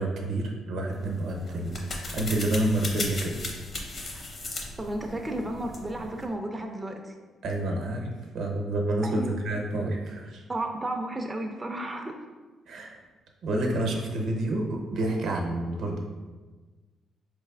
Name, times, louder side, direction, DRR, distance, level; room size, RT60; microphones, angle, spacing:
voice 1, 0.0-3.4 7.4-10.4 12.7-13.0 13.4-16.0, right 1 dB, 75° right, 1 dB, 0.6 m, -29 dB
sound 1, 0.9-6.3, left 2 dB, 45° left, 0.6 m, -37 dB
voice 2, 4.8-7.1 9.0-9.4 10.5-12.1, right 1 dB, 15° right, 3 dB, 0.3 m, -33 dB
4.0 x 3.2 x 2.3 m, 1.3 s
cardioid pair, 90°, 0 cm